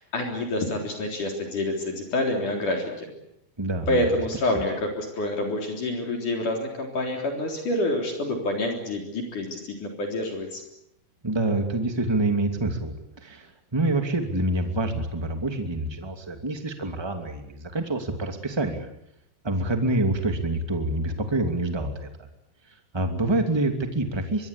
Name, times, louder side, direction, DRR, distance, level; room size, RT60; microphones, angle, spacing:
voice 1, 0.0-3.1 3.9-10.6, left 1 dB, 45° left, 2 dB, 4.9 m, -27 dB
voice 2, 3.6-4.0 11.2-18.9 19.4-22.1 22.9-24.5, right 2 dB, 10° right, 5 dB, 1.5 m, -26 dB
25.0 x 22.0 x 8.6 m, 0.77 s
omnidirectional pair, 5.2 m